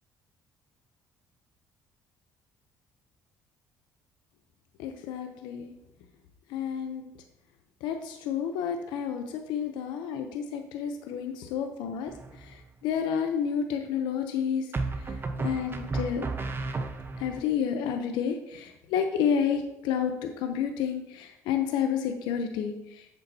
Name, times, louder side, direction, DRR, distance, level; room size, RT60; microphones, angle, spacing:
voice 1, 4.8-5.7 6.5-7.0 7.8-9.2 9.5-12.1 12.8-14.6 15.4-16.2 17.2-22.7, left 7 dB, 80° left, 6 dB, 0.7 m, -30 dB
sound 1, 12.1-12.6 14.7-17.4, right 3 dB, 30° right, 0.9 m, -33 dB
8.3 x 7.0 x 2.8 m, 0.88 s
supercardioid pair, 75°, 8 cm